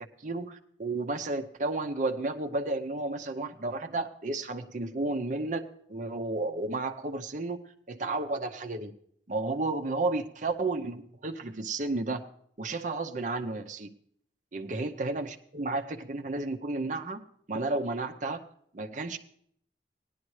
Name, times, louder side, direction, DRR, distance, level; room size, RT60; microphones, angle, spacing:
voice 1, 0.2-5.6 5.9-7.6 7.9-8.9 9.3-12.3 12.6-13.9 14.5-17.2 17.5-18.4 18.7-19.2, right 2 dB, 45° right, 6 dB, 0.7 m, -32 dB
17.0 x 11.0 x 3.2 m, 0.66 s
head